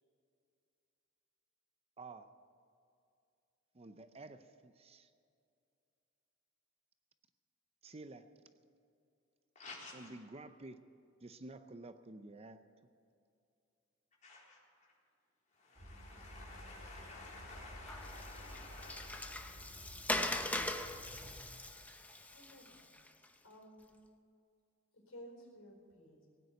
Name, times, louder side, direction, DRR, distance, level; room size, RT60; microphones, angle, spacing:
voice 1, 2.0-2.3 3.7-5.1 7.8-8.3 9.9-10.8 11.2-12.6, right 2 dB, 30° right, 10 dB, 0.6 m, -51 dB
voice 2, 9.6-10.1 14.2-14.9 15.5-19.7, left 3 dB, 35° left, -4 dB, 3.8 m, -52 dB
sound 1, 15.8-21.6, equal, 50° right, 1.6 m, -53 dB
Water, 17.9-23.3, left 1 dB, 5° left, 0.7 m, -41 dB
voice 3, 22.3-22.9 23.4-23.9 25.1-26.3, equal, 80° left, 1 dB, 4.4 m, -55 dB
18.5 x 9.5 x 8.2 m, 2.5 s
head